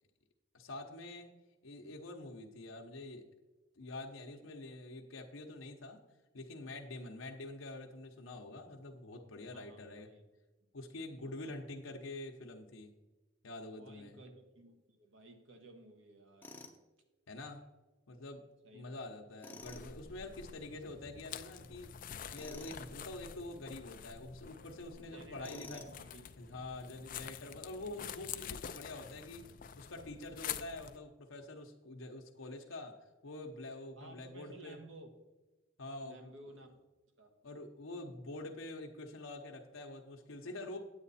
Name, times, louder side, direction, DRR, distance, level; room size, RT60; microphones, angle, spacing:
voice 1, 0.5-1.3 1.6-3.3 3.8-6.0 6.3-10.1 10.7-12.9 13.4-14.2 17.3-17.6 18.1-18.4 18.7-21.9 22.3-25.8 26.4-29.5 29.8-33.0 33.2-34.8 35.8-36.3 37.4-40.8, left 2 dB, 90° left, 1 dB, 0.9 m, -46 dB
voice 2, 9.5-10.2 11.1-11.6 13.8-16.6 18.6-19.0 19.3-19.5 25.1-26.2 34.0-35.1 36.0-36.8 37.2-37.3, right 2 dB, 70° right, 4 dB, 1.4 m, -55 dB
Tools, 16.4-16.8 19.4-19.9 22.3-22.8 25.4-26.0, left 3 dB, 10° left, 0.7 m, -50 dB
sound 1, 19.6-31.0, left 8 dB, 45° left, 0.4 m, -47 dB
9.4 x 8.1 x 4.2 m, 1.1 s
head